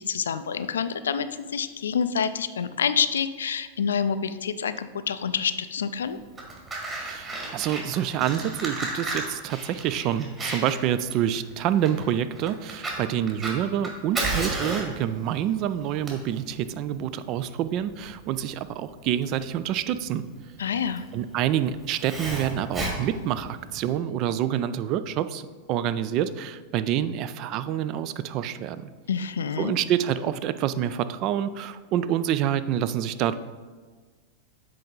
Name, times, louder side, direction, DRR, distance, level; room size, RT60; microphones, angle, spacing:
voice 1, 0.0-6.2 20.6-21.0 29.1-29.8, left 7 dB, 65° left, 12 dB, 0.3 m, -27 dB
Fire, 6.2-23.9, right 2 dB, 20° right, 1.7 m, -34 dB
voice 2, 6.9-20.2 21.1-25.4 25.7-28.9 29.6-33.3, right 10 dB, 40° right, 13 dB, 0.3 m, -27 dB
7.6 x 4.6 x 3.8 m, 1.4 s
figure-of-eight pair, 90°, 0 cm